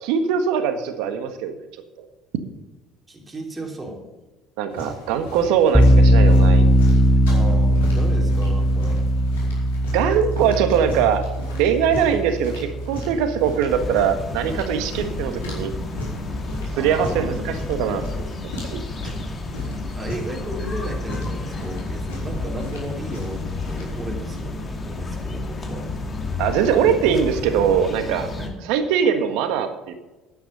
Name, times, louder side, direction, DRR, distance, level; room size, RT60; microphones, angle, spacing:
voice 1, 0.0-1.6 2.0-2.1 4.6-6.7 9.9-11.2 11.5-15.7 16.8-18.3 18.7-18.8 26.4-28.3 28.7-29.9, right 8 dB, 70° right, 8 dB, 1.5 m, -21 dB
voice 2, 3.1-4.0 7.3-9.1 12.1-12.2 16.7-17.3 19.3-19.4 19.9-25.9 28.4-28.5, right 1 dB, 20° right, 0 dB, 3.5 m, -35 dB
sound 1, 4.7-24.0, left 1 dB, 85° left, 4.6 m, -38 dB
sound 2, 5.7-14.6, equal, ahead, 1.4 m, -19 dB
sound 3, 13.7-28.5, left 2 dB, 35° left, 2.5 m, -31 dB
11.5 x 9.6 x 5.5 m, 1.1 s
hypercardioid pair, 65°, 0 cm